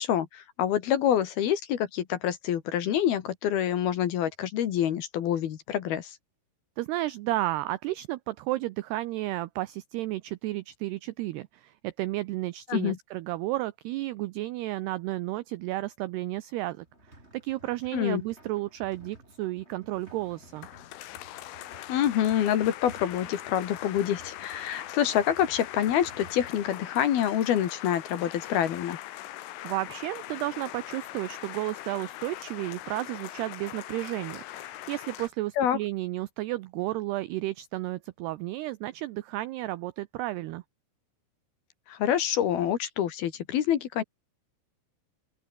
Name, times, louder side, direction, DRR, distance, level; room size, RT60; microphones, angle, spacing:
voice 1, 0.0-6.2 12.7-13.0 17.9-18.2 21.9-29.0 35.6-35.8 41.9-44.0, left 10 dB, 60° left, 3.1 m, -27 dB
voice 2, 6.8-16.9 17.3-20.7 29.6-40.6, right 17 dB, 85° right, 2.3 m, -32 dB
sound 1, 16.8-26.7, right 1 dB, 10° right, 7.7 m, -54 dB
sound 2, 19.9-35.3, left 14 dB, 85° left, 4.0 m, -42 dB
open air
omnidirectional pair, 5.6 m